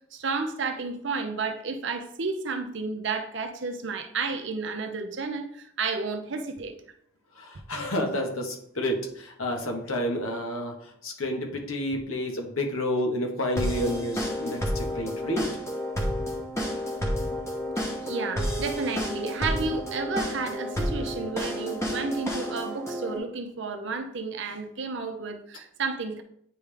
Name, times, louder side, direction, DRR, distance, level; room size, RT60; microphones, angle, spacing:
voice 1, 0.1-6.7 18.0-26.2, right 4 dB, 60° right, 5 dB, 0.7 m, -32 dB
voice 2, 7.3-15.5, left 1 dB, 90° left, 2 dB, 1.3 m, -30 dB
sound 1, 13.6-23.2, equal, 15° left, 1.0 m, -30 dB
9.2 x 3.5 x 3.4 m, 0.68 s
head